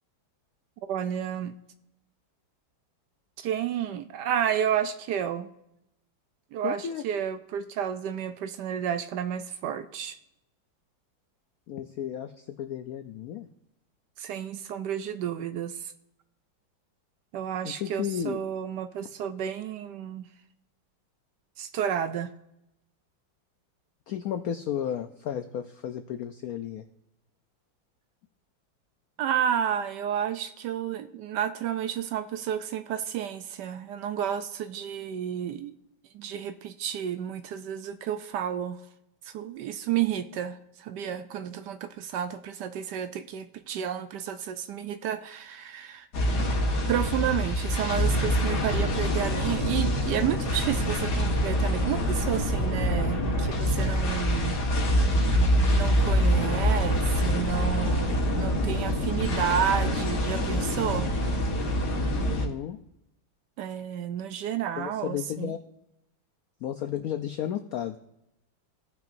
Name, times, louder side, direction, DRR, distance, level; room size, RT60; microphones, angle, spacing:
voice 1, 0.9-1.5 3.4-5.5 6.5-10.2 14.2-15.9 17.3-20.3 21.6-22.3 29.2-35.8 36.1-38.8 39.2-46.1 46.9-54.6 55.7-61.1 63.6-65.5, right 9 dB, 75° right, 10 dB, 1.1 m, -31 dB
voice 2, 6.6-7.0 11.7-13.5 17.6-18.4 24.1-26.8 62.2-62.8 64.8-65.6 66.6-68.0, left 10 dB, 80° left, 8 dB, 0.8 m, -33 dB
sound 1, 46.1-62.5, equal, 60° left, 2.0 m, -25 dB
17.0 x 5.9 x 2.6 m, 0.84 s
omnidirectional pair, 2.1 m